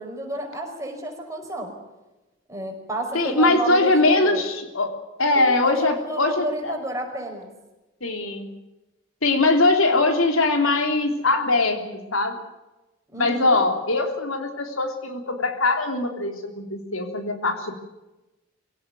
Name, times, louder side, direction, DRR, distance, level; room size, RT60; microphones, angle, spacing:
voice 1, 0.0-1.8 2.5-4.4 5.6-7.5 13.1-13.5, right 1 dB, 15° right, 1 dB, 5.3 m, -31 dB
voice 2, 3.1-6.7 8.0-8.5 9.2-12.4 13.2-17.7, left 2 dB, 90° left, 6 dB, 3.4 m, -22 dB
24.0 x 17.0 x 9.3 m, 1.0 s
head